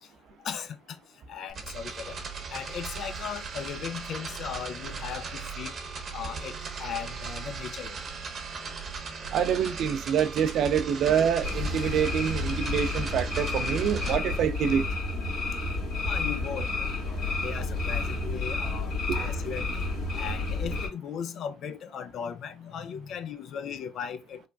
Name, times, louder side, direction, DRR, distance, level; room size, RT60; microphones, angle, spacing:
voice 1, 0.4-1.0 1.3-2.2 2.5-5.7 6.1-6.5 6.8-8.0 11.4-11.5 16.0-18.9 19.2-19.7 20.2-24.4, left 8 dB, 60° left, 0.4 m, -37 dB
sound 1, 1.5-14.2, right 5 dB, 45° right, 0.8 m, -38 dB
voice 2, 9.3-14.8 19.1-19.2, right 8 dB, 65° right, 0.4 m, -26 dB
sound 2, 11.4-20.9, left 2 dB, 75° left, 1.6 m, -30 dB
3.3 x 2.2 x 2.4 m
hypercardioid pair, 60°, 0 cm